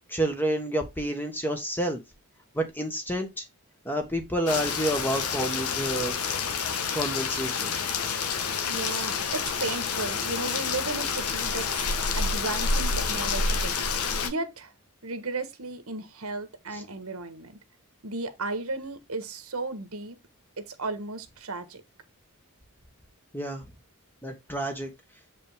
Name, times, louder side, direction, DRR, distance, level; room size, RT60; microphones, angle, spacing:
voice 1, 0.1-2.0 2.5-3.4 3.8-6.2 6.9-7.7 16.7-16.8 23.3-23.6 24.2-24.9, right 1 dB, 10° left, 1.4 m, -29 dB
Rain, 4.5-14.3, left 5 dB, 90° left, 1.2 m, -28 dB
voice 2, 8.7-11.8 12.1-13.8 14.2-14.7 15.0-17.6 18.0-20.2 20.6-21.8, right 3 dB, 70° right, 1.4 m, -35 dB
7.5 x 5.3 x 3.6 m
head